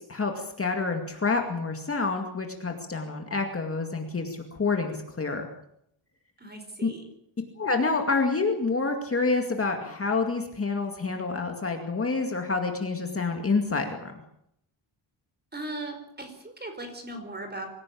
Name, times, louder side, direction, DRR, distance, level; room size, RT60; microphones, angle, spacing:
voice 1, 0.1-5.5 6.8-6.9 7.6-14.1, left 4 dB, 30° left, 3 dB, 2.2 m, -28 dB
voice 2, 6.4-7.1 15.5-17.7, right 2 dB, 20° right, 6 dB, 4.6 m, -38 dB
25.0 x 16.5 x 8.6 m, 0.75 s
wide cardioid pair, 180°, 48 cm